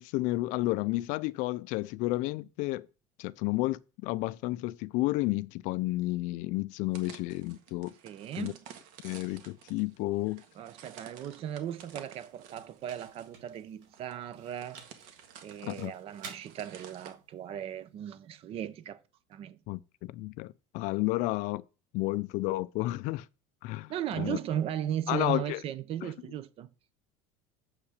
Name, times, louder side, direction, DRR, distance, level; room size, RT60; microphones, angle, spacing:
voice 1, 0.0-2.9 3.2-7.9 8.4-8.5 9.0-10.4 15.6-15.9 19.7-21.6 21.9-23.3 23.6-24.4 25.1-25.6 26.0-26.1, left 19 dB, 55° left, 0.4 m, -31 dB
sound 1, 6.9-17.1, right 8 dB, 60° right, 1.6 m, -52 dB
voice 2, 8.0-8.6 10.6-15.1 15.4-19.0 19.3-19.6 23.9-26.7, right 10 dB, 40° right, 0.7 m, -37 dB
sound 2, 11.4-19.3, right 5 dB, 85° right, 4.9 m, -55 dB
7.6 x 5.8 x 6.4 m
cardioid pair, 170°, 16 cm